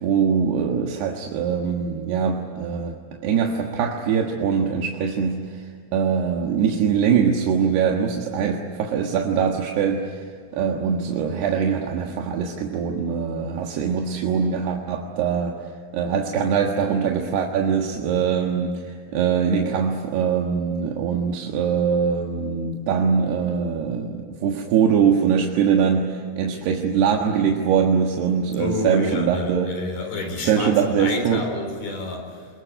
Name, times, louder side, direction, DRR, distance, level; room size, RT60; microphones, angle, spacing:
voice 1, 0.0-15.6 15.9-29.7 30.4-31.4, right 7 dB, 85° right, 1 dB, 3.7 m, -22 dB
voice 2, 28.6-32.5, left 2 dB, 70° left, 5 dB, 6.0 m, -29 dB
28.0 x 21.5 x 9.0 m, 2.1 s
omnidirectional pair, 4.6 m